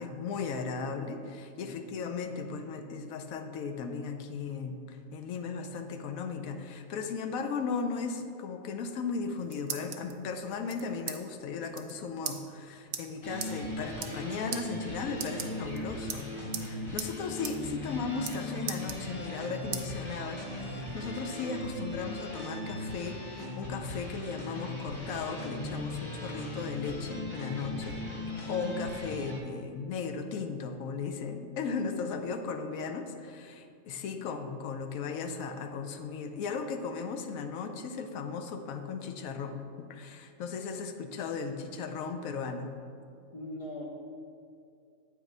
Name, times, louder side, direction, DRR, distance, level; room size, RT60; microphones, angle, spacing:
voice 1, 0.0-16.3 16.5-28.0 28.5-42.7, left 5 dB, 90° left, 6 dB, 1.0 m, -36 dB
sound 1, 9.1-10.1 10.7-11.2 11.4-11.5 11.7-11.9 12.2-12.4 12.9-13.0 13.4-13.5 13.9-14.2 14.5-14.6 15.1-15.8 16.1-16.7 17.0-17.1 17.4-17.6 17.8-18.4 18.7-19.4 19.7-19.9 20.3-21.2, right 8 dB, 75° right, 0.9 m, -38 dB
sound 2, 13.2-29.4, left 1 dB, 25° left, 0.8 m, -38 dB
voice 2, 43.3-43.8, left 1 dB, 60° left, -1 dB, 0.3 m, -42 dB
8.1 x 3.0 x 5.3 m, 2.4 s
omnidirectional pair, 1.4 m